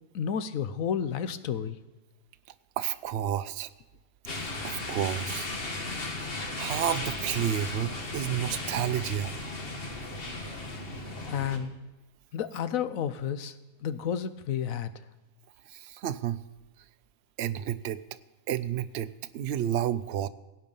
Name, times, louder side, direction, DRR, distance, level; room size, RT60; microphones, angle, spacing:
voice 1, 0.1-1.8 11.3-11.7 12.3-13.5 13.8-14.9, left 8 dB, 75° left, 12 dB, 1.1 m, -31 dB
voice 2, 2.8-3.7 4.6-5.5 6.6-9.4 15.8-16.4 17.4-18.0 18.5-20.3, right 10 dB, 60° right, 13 dB, 0.7 m, -30 dB
sound 1, 4.3-11.6, left 2 dB, 45° left, 1.6 m, -36 dB
17.0 x 9.2 x 5.4 m, 1.2 s
omnidirectional pair, 1.5 m